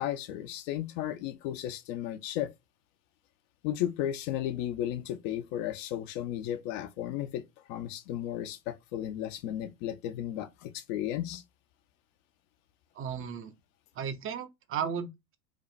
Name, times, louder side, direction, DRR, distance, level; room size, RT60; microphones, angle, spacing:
voice 1, 0.0-2.5 3.6-11.4, left 12 dB, 50° left, 0.8 m, -34 dB
voice 2, 13.0-13.5 14.0-15.4, right 7 dB, 25° right, 0.7 m, -35 dB
5.0 x 2.4 x 3.2 m
hypercardioid pair, 90°, 48 cm